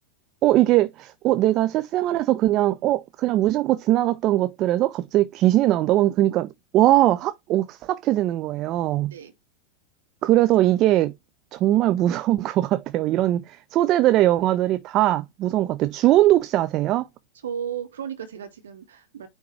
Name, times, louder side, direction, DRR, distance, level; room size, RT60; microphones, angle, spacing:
voice 1, 0.4-9.1 10.2-11.1 11.5-17.1, right 14 dB, 35° right, 0.4 m, -21 dB
voice 2, 9.0-9.3 17.4-19.3, right 8 dB, 65° right, 1.2 m, -34 dB
9.4 x 3.5 x 3.1 m
figure-of-eight pair, 90°, 0 cm